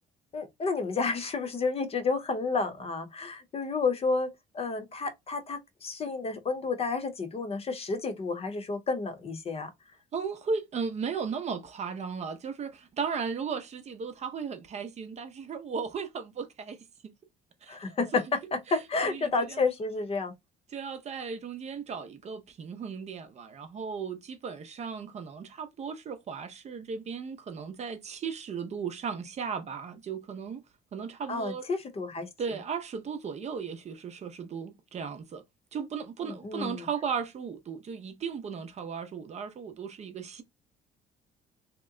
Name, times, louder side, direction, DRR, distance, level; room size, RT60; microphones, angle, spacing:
voice 1, 0.3-4.3 4.5-9.7 17.7-18.2 18.5-20.3 31.3-32.3 36.2-36.9, left 4 dB, 35° left, 0.8 m, -30 dB
voice 2, 10.1-16.8 17.6-17.8 18.1-18.2 18.7-19.6 20.7-30.6 30.9-31.7 32.4-35.4 35.7-40.4, right 6 dB, 40° right, 0.6 m, -36 dB
2.9 x 2.1 x 3.6 m
cardioid pair, 110°, 17 cm